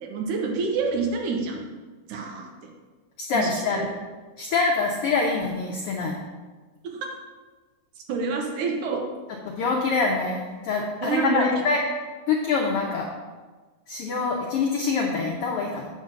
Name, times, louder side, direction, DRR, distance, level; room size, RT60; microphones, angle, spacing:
voice 1, 0.0-1.6 2.1-2.5 3.3-3.9 6.8-7.1 8.1-9.0 11.0-11.5, right 4 dB, 80° right, 1 dB, 2.5 m, -27 dB
voice 2, 3.3-3.8 4.4-6.2 9.5-11.8 12.3-13.1 13.9-15.9, left 4 dB, 80° left, 0 dB, 1.3 m, -25 dB
8.6 x 4.0 x 6.3 m, 1.3 s
omnidirectional pair, 3.6 m